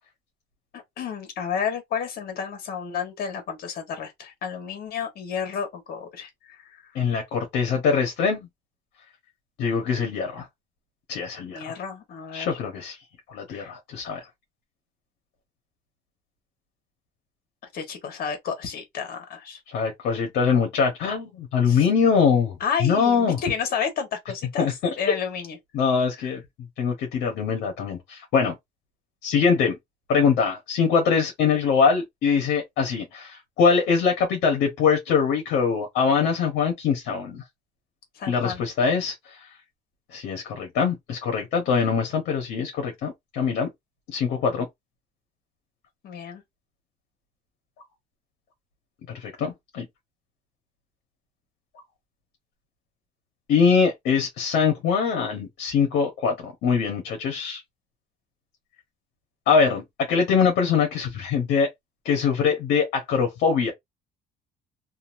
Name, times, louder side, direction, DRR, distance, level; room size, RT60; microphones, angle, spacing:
voice 1, 0.7-6.8 11.5-12.6 13.5-13.7 17.7-19.6 21.7-21.9 22.6-24.7 25.0-25.6 26.2-26.3 38.1-38.6 46.0-46.4, left 6 dB, 65° left, 1.4 m, -31 dB
voice 2, 6.9-8.5 9.6-10.5 11.1-11.7 12.3-13.0 13.3-14.2 19.7-23.4 24.6-24.7 25.7-26.4 26.8-28.5 29.2-29.8 30.1-37.4 38.3-39.1 40.1-43.7 44.1-44.6 49.1-49.8 53.5-57.6 59.5-61.7 62.0-63.7, left 6 dB, 80° left, 1.2 m, -23 dB
2.8 x 2.7 x 2.6 m
cardioid pair, 110°, 17 cm